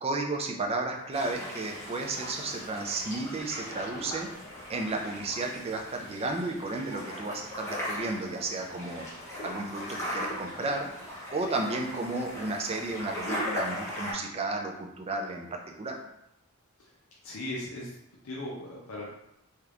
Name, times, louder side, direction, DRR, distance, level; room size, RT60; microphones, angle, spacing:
voice 1, 0.0-4.3 4.7-9.1 9.4-10.9 11.3-16.0, right 2 dB, 30° right, 2 dB, 0.4 m, -33 dB
sound 1, 1.1-14.1, equal, 15° left, 0.8 m, -38 dB
voice 2, 17.2-18.0 18.2-19.1, left 1 dB, 80° left, -4 dB, 0.6 m, -38 dB
3.3 x 2.9 x 2.4 m, 0.82 s
head